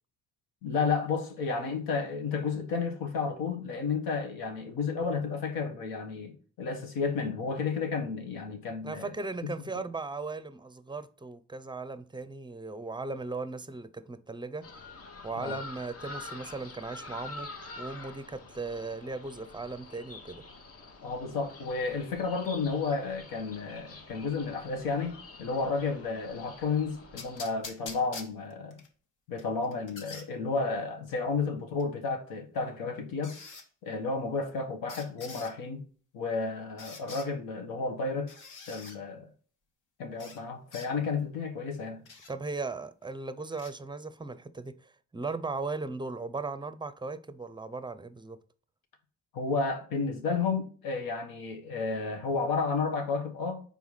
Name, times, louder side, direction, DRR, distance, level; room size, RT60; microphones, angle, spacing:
voice 1, 0.6-9.1 15.3-15.6 21.0-28.8 29.3-33.4 33.8-35.8 36.1-38.3 38.7-39.3 40.0-42.0 49.3-53.6, left 4 dB, 80° left, 1.3 m, -32 dB
voice 2, 8.8-14.7 15.2-17.5 17.8-20.4 42.3-48.4, right 3 dB, 15° right, 0.6 m, -37 dB
sound 1, 14.6-27.4, left 3 dB, 40° left, 1.2 m, -47 dB
sound 2, 27.2-28.9 29.4-30.3 31.8-31.9 33.2-33.7 34.9-35.5 36.8-37.3 38.3-39.0 40.2-40.4 40.7-40.9 42.1-42.3 43.5-43.7, left 4 dB, 60° left, 1.3 m, -45 dB
4.7 x 4.0 x 5.5 m
supercardioid pair, 55°, 35 cm